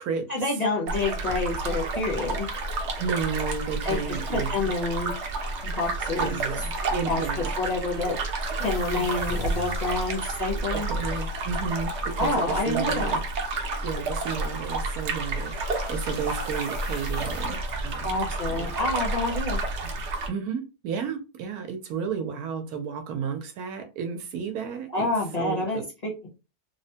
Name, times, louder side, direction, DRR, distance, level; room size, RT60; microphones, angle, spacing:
voice 1, 0.3-2.5 3.8-4.0 4.3-5.1 5.6-6.7 7.1-8.1 8.6-10.9 12.2-13.2 18.0-19.6 24.9-26.1, left 2 dB, 35° left, 0.8 m, -28 dB
sound 1, 0.9-20.3, right 3 dB, 60° right, 0.8 m, -30 dB
voice 2, 3.0-4.6 6.1-7.5 10.7-13.2 13.8-18.1 18.6-18.8 19.2-19.3 20.3-25.1 25.4-25.9, right 6 dB, 85° right, 1.2 m, -32 dB
sound 2, 8.6-17.5, left 3 dB, 65° left, 0.5 m, -38 dB
3.3 x 2.1 x 2.7 m
omnidirectional pair, 1.6 m